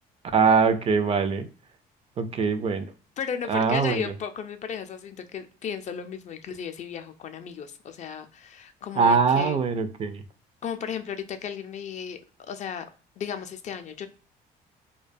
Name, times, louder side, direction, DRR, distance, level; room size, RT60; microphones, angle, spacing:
voice 1, 0.3-1.5 2.2-2.9 3.5-4.0 9.0-10.2, right 5 dB, 35° right, 9 dB, 0.3 m, -22 dB
voice 2, 3.2-9.6 10.6-12.2 12.5-12.9 13.2-14.1, left 7 dB, 45° left, 8 dB, 0.4 m, -35 dB
2.3 x 2.2 x 2.5 m, 0.39 s
cardioid pair, 110°, 17 cm